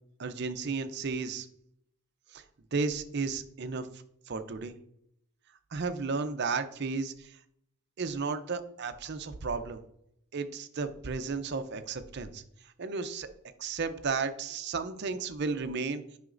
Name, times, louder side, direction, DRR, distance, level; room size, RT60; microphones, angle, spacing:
voice 1, 0.2-1.5 2.3-2.4 2.7-4.8 5.7-7.4 8.0-9.8 10.3-13.3 13.6-16.0, right 4 dB, 50° right, 9 dB, 0.6 m, -34 dB
9.2 x 5.7 x 2.5 m, 0.73 s
head